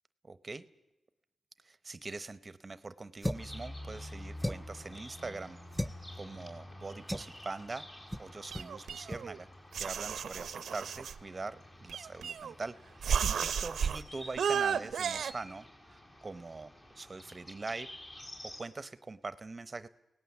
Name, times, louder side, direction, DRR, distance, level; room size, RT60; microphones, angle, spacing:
voice 1, 0.2-0.6 1.6-7.9 8.2-9.5 9.8-17.9 18.6-19.9, right 3 dB, 35° right, 15 dB, 0.9 m, -43 dB
sound 1, 3.2-3.6 4.4-4.8 5.7-6.0 7.1-7.3 8.1-8.3 8.5-8.7 9.1-9.2, equal, ahead, 0.7 m, -35 dB
sound 2, 3.3-18.6, left 1 dB, 35° left, 5.1 m, -50 dB
sound 3, 8.5-9.4 9.7-11.2 11.9-12.6 13.0-14.0 14.4-15.3, right 7 dB, 85° right, 0.7 m, -33 dB
24.0 x 18.0 x 7.2 m, 0.93 s
cardioid pair, 70°, 0 cm